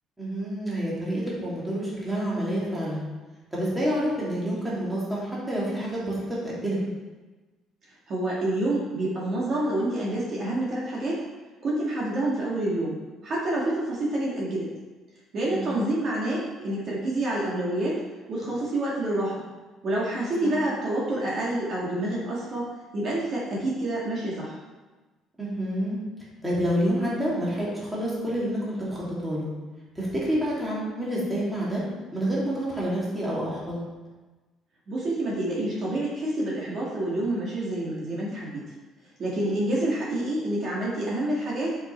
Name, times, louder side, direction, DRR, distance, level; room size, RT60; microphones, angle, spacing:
voice 1, 0.2-3.1 3.5-6.8 15.5-15.7 20.4-20.5 25.4-26.0 26.4-29.5 30.0-31.8 32.1-33.9, equal, 5° right, -7 dB, 2.4 m, -28 dB
voice 2, 8.1-11.2 11.6-13.0 13.2-14.7 15.3-18.0 18.3-19.4 19.8-24.6 34.9-38.6 39.2-41.8, right 1 dB, 40° right, -5 dB, 1.7 m, -28 dB
9.9 x 5.4 x 4.4 m, 1.2 s
cardioid pair, 170°, 0 cm